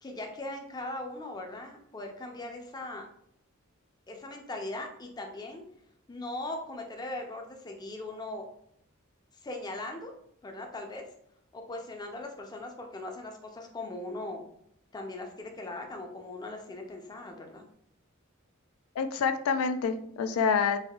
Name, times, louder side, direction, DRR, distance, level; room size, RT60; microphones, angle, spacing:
voice 1, 0.0-3.1 4.1-5.6 6.1-8.4 9.4-10.1 10.4-11.0 11.5-14.4 14.9-17.6, left 2 dB, 20° left, 3 dB, 0.4 m, -39 dB
voice 2, 19.0-20.8, left 5 dB, 85° left, 9 dB, 0.3 m, -27 dB
3.4 x 2.4 x 2.3 m, 0.71 s
head